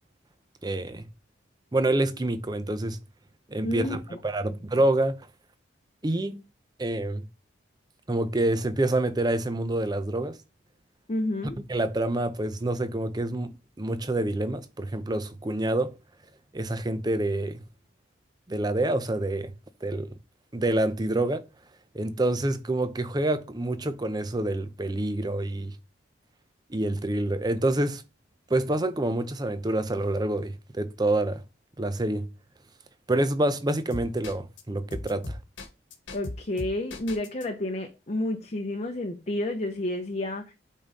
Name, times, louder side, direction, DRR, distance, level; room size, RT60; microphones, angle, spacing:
voice 1, 0.6-1.1 1.7-3.0 3.5-5.2 6.0-6.4 6.8-7.3 8.1-10.4 11.6-15.9 16.5-17.6 18.5-19.5 19.8-20.1 20.5-21.4 21.9-25.7 26.7-28.0 28.5-31.4 31.8-32.3 33.1-35.4, right 1 dB, 20° right, 0.5 m, -27 dB
voice 2, 3.6-4.0 11.1-11.6 36.1-40.5, left 1 dB, 35° left, 0.7 m, -30 dB
sound 1, 33.9-34.6 34.9-37.4, left 2 dB, 80° left, 1.3 m, -37 dB
8.5 x 3.7 x 4.1 m
head